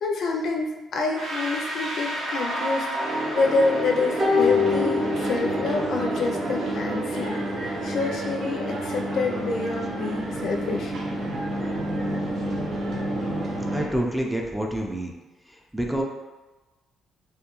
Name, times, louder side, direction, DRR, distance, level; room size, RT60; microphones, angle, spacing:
voice 1, 0.0-10.9, left 3 dB, 65° left, 1 dB, 0.4 m, -27 dB
sound 1, 1.1-12.0, right 1 dB, 75° right, 1.1 m, -32 dB
sound 2, 4.2-5.8 6.1-6.2, left 5 dB, 25° right, 0.8 m, -24 dB
sound 3, 4.4-13.9, right 1 dB, 60° right, 0.5 m, -30 dB
voice 2, 13.7-15.1 15.7-16.0, right 1 dB, 5° right, 0 dB, 0.4 m, -27 dB
2.2 x 2.2 x 2.9 m, 1.1 s
cardioid pair, 90°, 0 cm